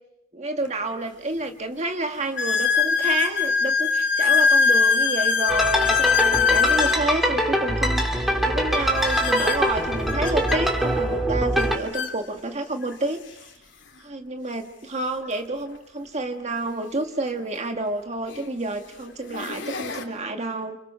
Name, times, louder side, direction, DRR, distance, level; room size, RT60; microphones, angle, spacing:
voice 1, 0.3-13.2 14.0-20.8, right 2 dB, 35° right, 5 dB, 1.6 m, -29 dB
sound 1, 0.6-0.7 1.4-1.5 2.4-7.0 8.9-10.6 11.6-11.7 11.9-12.1 12.9-13.0 15.2-15.3 17.4-17.5 18.2-18.5 19.1-20.0, left 6 dB, 65° left, 3.0 m, -22 dB
sound 2, 5.5-11.8, equal, ahead, 2.7 m, -23 dB
30.0 x 27.5 x 5.7 m, 0.81 s
head